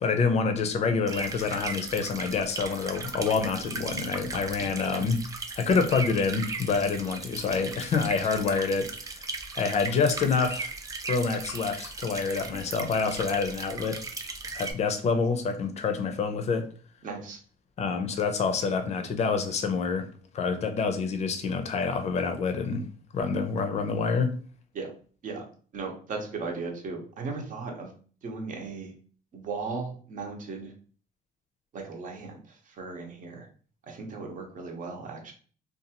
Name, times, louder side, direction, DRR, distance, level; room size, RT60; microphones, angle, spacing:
voice 1, 0.0-5.2 5.5-8.9 9.5-10.7 11.1-14.0 14.5-16.7 17.8-20.1 20.3-22.8 23.1-24.3, left 5 dB, 40° left, 0.5 m, -27 dB
sound 1, 1.1-14.7, right 3 dB, 20° right, 0.4 m, -37 dB
voice 2, 4.6-5.0 17.0-17.4 24.7-24.9 25.2-25.4 25.7-27.9 28.2-28.9 29.3-30.7 31.7-32.4 32.8-33.5 33.9-35.3, right 4 dB, 50° right, 0.8 m, -36 dB
2.6 x 2.4 x 2.8 m
cardioid pair, 110°, 17 cm